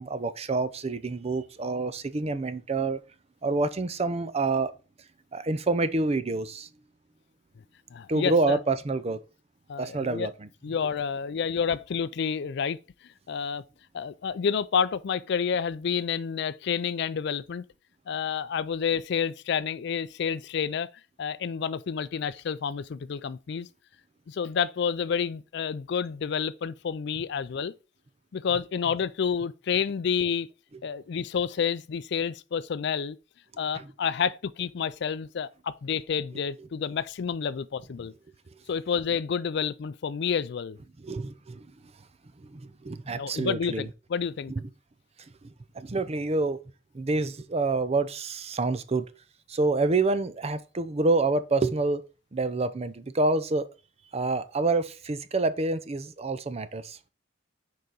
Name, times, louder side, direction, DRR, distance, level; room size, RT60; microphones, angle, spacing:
voice 1, 0.0-3.0 3.4-4.7 5.3-6.7 8.1-9.2 9.8-10.5 33.8-33.9 41.0-41.7 42.5-43.9 45.8-46.6 46.9-49.1 49.5-52.0 52.3-53.7 54.1-57.0, right 3 dB, 35° right, 0.6 m, -27 dB
voice 2, 7.9-8.6 9.7-10.3 10.6-12.8 13.3-13.6 13.9-17.6 18.1-20.9 21.2-23.7 24.3-27.7 28.3-30.5 30.8-33.2 33.6-38.1 38.7-40.8 43.1-44.5, left 7 dB, 65° left, 0.4 m, -29 dB
6.7 x 4.8 x 3.9 m
head